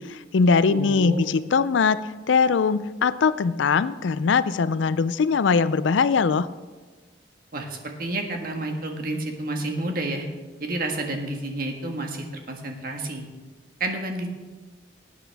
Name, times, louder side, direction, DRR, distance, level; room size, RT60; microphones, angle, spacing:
voice 1, 0.0-6.5, left 5 dB, 80° left, 16 dB, 0.4 m, -21 dB
voice 2, 0.7-1.3 7.5-10.3 10.6-13.3 13.8-14.3, right 2 dB, 50° right, 3 dB, 1.5 m, -30 dB
18.5 x 9.2 x 3.5 m, 1.3 s
head